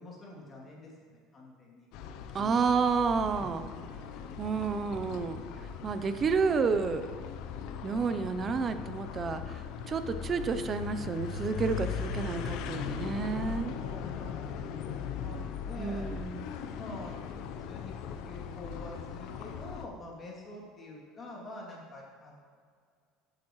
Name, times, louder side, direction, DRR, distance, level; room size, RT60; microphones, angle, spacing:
voice 1, 0.0-1.9 2.3-2.6 3.3-3.6 4.2-4.4 13.6-16.1 16.8-17.9 18.2-22.5, left 2 dB, 25° left, -3 dB, 2.7 m, -47 dB
sound 1, 1.9-19.9, left 7 dB, 60° left, 0.7 m, -39 dB
voice 2, 2.3-3.8 4.4-5.4 5.8-7.1 7.8-9.6 9.9-13.7 15.8-16.4, right 5 dB, 25° right, 10 dB, 0.6 m, -30 dB
16.0 x 8.7 x 3.2 m, 2.1 s
cardioid pair, 150°, 0 cm